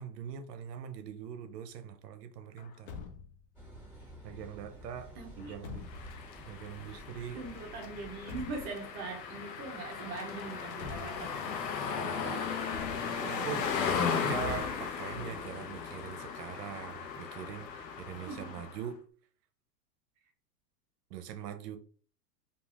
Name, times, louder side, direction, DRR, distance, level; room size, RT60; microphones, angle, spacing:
voice 1, 0.0-3.0 4.2-5.9 6.4-7.4 13.4-13.6 14.2-19.0 21.1-21.8, right 9 dB, 70° right, 0.7 m, -42 dB
Truck, 2.6-3.5 5.4-6.2 7.9-8.9 10.4-11.5 12.7-13.5 14.4-15.3, left 6 dB, 45° left, 0.4 m, -46 dB
Car passing by / Idling / Accelerating revving vroom, 3.5-8.7, equal, 15° left, 1.5 m, -50 dB
voice 2, 5.1-5.6 7.3-12.5 13.2-14.3 15.1-15.3 18.3-18.7, right 4 dB, 30° right, 0.6 m, -43 dB
sound 1, 5.9-18.9, left 6 dB, 90° left, 0.8 m, -36 dB
3.1 x 2.4 x 2.4 m
supercardioid pair, 140°, 49 cm